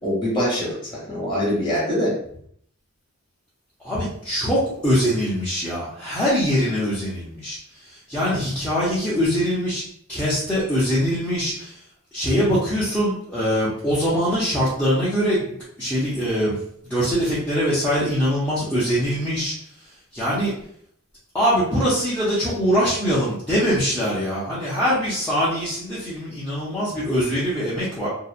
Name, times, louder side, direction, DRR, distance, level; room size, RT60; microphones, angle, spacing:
voice 1, 0.0-2.1 8.3-8.4, equal, 20° left, -6 dB, 1.1 m, -24 dB
voice 2, 3.8-9.8 10.1-11.8 12.1-15.5 15.8-16.6 16.8-19.5 20.1-20.5 21.3-28.1, equal, 5° left, -11 dB, 0.6 m, -23 dB
2.8 x 2.0 x 2.4 m, 0.66 s
head